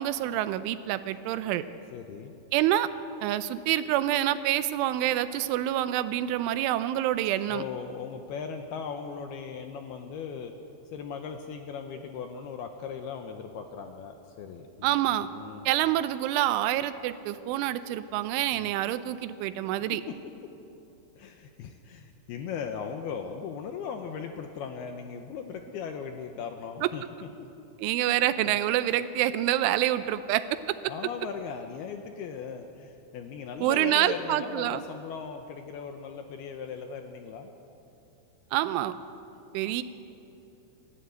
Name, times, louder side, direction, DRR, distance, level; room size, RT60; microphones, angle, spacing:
voice 1, 0.0-1.6 2.5-2.9 3.2-7.6 14.8-15.3 15.7-20.0 26.8-26.9 27.8-30.8 33.6-34.8 38.5-39.0 39.5-39.8, right 13 dB, 85° right, 12 dB, 3.2 m, -27 dB
voice 2, 1.9-2.3 7.5-10.5 10.9-15.7 18.6-18.7 20.1-20.2 21.2-27.0 27.4-27.7 28.5-28.6 30.9-37.5 39.6-39.7, left 6 dB, 75° left, 5 dB, 2.4 m, -38 dB
27.5 x 13.5 x 8.2 m, 2.8 s
omnidirectional pair, 5.5 m